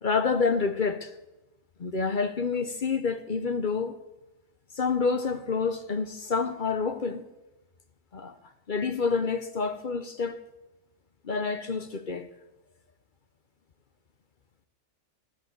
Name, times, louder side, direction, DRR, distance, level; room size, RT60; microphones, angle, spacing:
voice 1, 0.0-1.1 1.8-3.9 4.7-7.2 8.1-8.3 8.7-10.4 11.2-12.3, left 5 dB, 45° left, 0.8 m, -28 dB
14.0 x 9.4 x 7.9 m
omnidirectional pair, 1.4 m